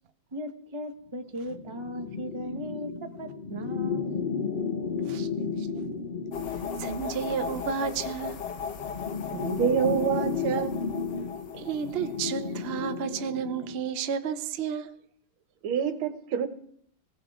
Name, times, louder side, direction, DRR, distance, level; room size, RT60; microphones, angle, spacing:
voice 1, 0.3-4.3, equal, 20° right, 1.0 m, -37 dB
sound 1, 1.4-13.9, left 5 dB, 85° left, 0.4 m, -34 dB
sound 2, 6.3-13.2, left 7 dB, 60° left, 1.6 m, -38 dB
voice 2, 6.5-8.5 11.5-14.9, right 7 dB, 65° right, 0.6 m, -32 dB
voice 3, 9.3-10.8 15.6-16.5, right 8 dB, 80° right, 1.9 m, -27 dB
20.5 x 16.5 x 3.7 m
omnidirectional pair, 2.3 m